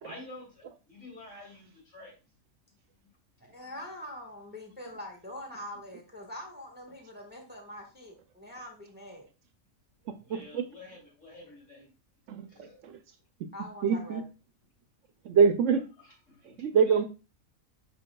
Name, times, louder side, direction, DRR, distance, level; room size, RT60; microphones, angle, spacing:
voice 1, 0.0-2.1 10.3-11.8 12.5-12.8 16.0-17.1, left 2 dB, 60° left, -2 dB, 3.3 m, -49 dB
voice 2, 3.4-9.3 11.5-11.9 13.5-14.2, left 1 dB, 10° right, 2 dB, 1.3 m, -44 dB
voice 3, 10.1-10.7 12.3-13.0 13.8-14.2 15.2-15.8 16.6-17.0, right 6 dB, 70° right, 9 dB, 0.8 m, -25 dB
7.6 x 5.6 x 2.2 m, 0.31 s
omnidirectional pair, 1.4 m